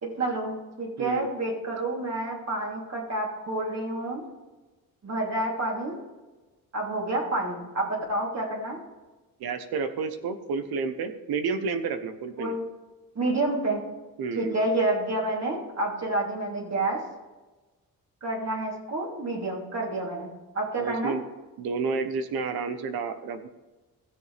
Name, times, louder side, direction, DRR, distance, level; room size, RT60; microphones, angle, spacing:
voice 1, 0.0-4.2 5.0-6.0 6.7-8.8 12.4-12.6 13.1-13.8 14.3-17.0 18.2-20.3 20.5-21.2, right 2 dB, 45° right, -2 dB, 3.2 m, -29 dB
voice 2, 9.4-12.6 14.2-14.6 20.8-21.2 21.6-23.5, right 5 dB, 90° right, 9 dB, 1.1 m, -30 dB
16.0 x 6.9 x 3.4 m, 1.2 s
cardioid pair, 100°, 36 cm